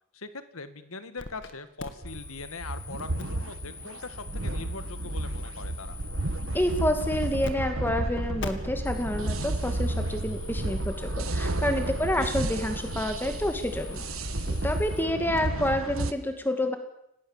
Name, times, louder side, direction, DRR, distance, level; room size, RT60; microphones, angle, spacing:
voice 1, 0.1-6.0 12.1-12.3, left 3 dB, 85° left, 11 dB, 1.9 m, -41 dB
sound 1, 1.2-1.5 1.8-7.5 7.8-7.9 8.4-15.0, left 4 dB, 55° left, 2.2 m, -44 dB
sound 2, 2.0-16.1, right 2 dB, 80° right, 1.4 m, -32 dB
sound 3, 5.8-14.9, equal, 10° right, 2.7 m, -39 dB
voice 2, 6.5-14.0 14.5-16.8, left 1 dB, 10° left, 6 dB, 2.3 m, -28 dB
28.0 x 18.5 x 7.3 m, 0.81 s
head